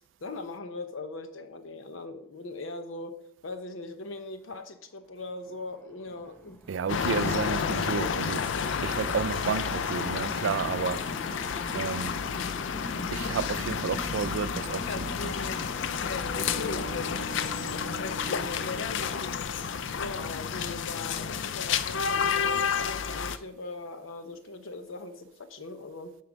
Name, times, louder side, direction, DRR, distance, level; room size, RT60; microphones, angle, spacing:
voice 1, 0.2-6.6 16.6-17.0 17.4-19.1 20.0-26.2, left 2 dB, 85° left, 0.8 m, -40 dB
sound 1, 5.2-21.7, left 1 dB, 10° left, 0.6 m, -45 dB
voice 2, 6.7-8.4 8.8-11.0 11.3-11.4 11.7-12.2 13.1-15.4, right 6 dB, 75° right, 0.4 m, -31 dB
sound 2, 6.9-23.4, left 6 dB, 65° left, 0.4 m, -30 dB
sound 3, 13.2-20.0, right 2 dB, 25° right, 1.5 m, -45 dB
9.4 x 4.3 x 5.1 m
head